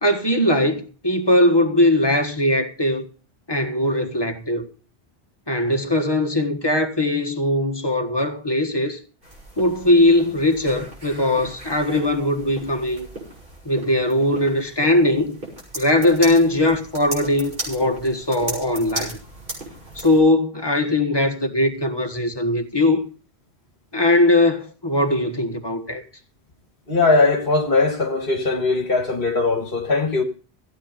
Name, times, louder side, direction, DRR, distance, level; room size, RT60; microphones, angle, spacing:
voice 1, 0.0-3.1 3.5-4.7 5.5-9.0 9.6-13.1 13.6-15.4 15.7-19.2 19.9-23.1 23.9-26.0, left 1 dB, 25° left, 1.6 m, -20 dB
sound 1, 9.2-20.2, right 1 dB, 55° right, 6.9 m, -36 dB
voice 2, 26.9-30.2, left 3 dB, 55° left, 1.9 m, -20 dB
15.5 x 9.0 x 5.2 m
omnidirectional pair, 1.1 m